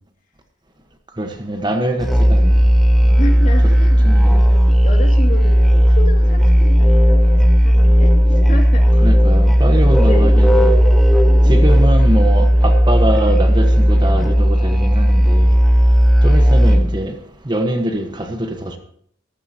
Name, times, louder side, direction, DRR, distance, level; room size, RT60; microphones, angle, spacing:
voice 1, 1.2-2.7 4.0-4.4 9.0-10.8 11.5-15.5 16.2-17.1 17.5-18.8, right 1 dB, 25° right, 1.3 m, -23 dB
Musical instrument, 2.0-17.0, equal, ahead, 1.3 m, -13 dB
voice 2, 3.2-8.9 10.0-10.3 11.3-11.8, left 1 dB, 45° left, 2.5 m, -30 dB
15.0 x 15.0 x 2.9 m
head